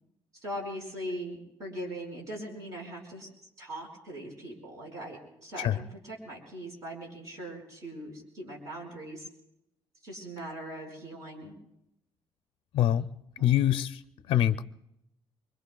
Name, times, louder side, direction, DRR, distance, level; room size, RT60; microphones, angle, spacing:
voice 1, 0.4-3.3 3.6-9.3 10.0-11.5 13.4-13.5, right 1 dB, 35° right, 0 dB, 4.9 m, -40 dB
voice 2, 12.7-13.1 13.4-14.0 14.3-14.6, left 11 dB, 65° left, 10 dB, 0.5 m, -24 dB
26.0 x 24.0 x 2.3 m, 0.80 s
cardioid pair, 160°, 10 cm